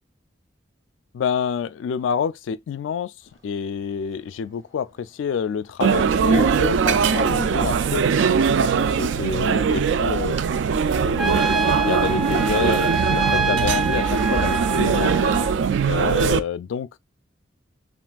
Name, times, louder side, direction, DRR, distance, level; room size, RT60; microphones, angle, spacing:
voice 1, 1.1-3.1 3.4-8.0 8.6-10.4 11.0-11.5 11.8-15.2 15.9-17.0, left 7 dB, 85° left, 0.3 m, -28 dB
Dog, 3.2-8.5, right 2 dB, 20° right, 1.8 m, -46 dB
sound 1, 5.8-16.4, right 6 dB, 70° right, 0.3 m, -21 dB
Trumpet, 11.2-15.5, right 3 dB, ahead, 0.4 m, -26 dB
5.7 x 2.5 x 2.3 m
head